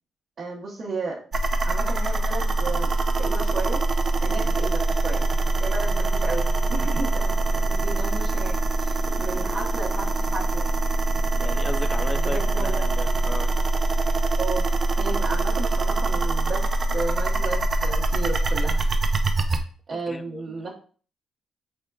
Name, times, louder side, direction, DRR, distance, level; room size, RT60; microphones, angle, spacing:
voice 1, 0.4-1.2 1.6-2.9 3.2-3.8 4.2-5.3 5.6-6.4 6.7-10.7 12.1-12.9 14.4-14.7 15.0-18.8 19.9-20.7, right 3 dB, 50° right, -6 dB, 1.0 m, -33 dB
sound 1, 1.3-19.6, right 2 dB, 35° right, 0.5 m, -23 dB
sound 2, 2.0-18.1, equal, 65° left, 1.1 m, -48 dB
voice 2, 9.0-9.6 11.4-13.5 19.9-20.7, left 2 dB, 25° left, 10 dB, 0.5 m, -36 dB
4.4 x 3.6 x 2.3 m, 0.42 s
cardioid pair, 90°, 0 cm